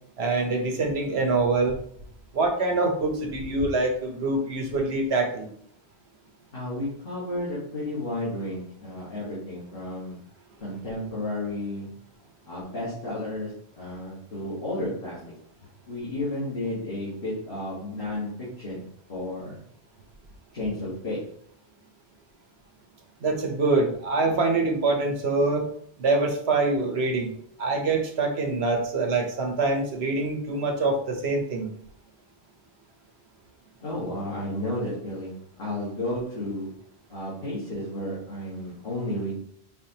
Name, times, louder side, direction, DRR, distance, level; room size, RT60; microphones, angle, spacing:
voice 1, 0.2-1.8 2.3-5.5 23.2-25.6 26.0-27.3 27.6-31.7, right 3 dB, 75° right, 2 dB, 1.2 m, -25 dB
voice 2, 6.5-10.2 10.6-11.9 12.5-15.3 15.9-19.6 20.5-21.3 33.8-36.8 37.1-39.3, left 1 dB, 60° left, -8 dB, 1.8 m, -32 dB
5.2 x 3.4 x 2.9 m, 0.64 s
omnidirectional pair, 1.1 m